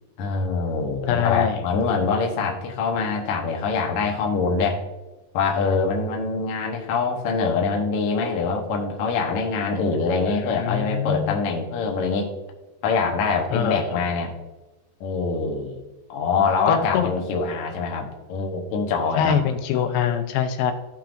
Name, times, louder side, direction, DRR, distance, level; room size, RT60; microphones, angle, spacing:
voice 1, 0.2-4.8 5.3-12.3 12.8-14.3 15.0-15.8 16.1-19.4, left 4 dB, 75° left, 1 dB, 1.4 m, -24 dB
voice 2, 1.1-1.6 10.3-11.4 13.5-13.8 16.7-17.1 19.2-20.7, left 8 dB, 90° left, 8 dB, 2.6 m, -23 dB
15.0 x 5.7 x 2.5 m, 1.1 s
omnidirectional pair, 4.3 m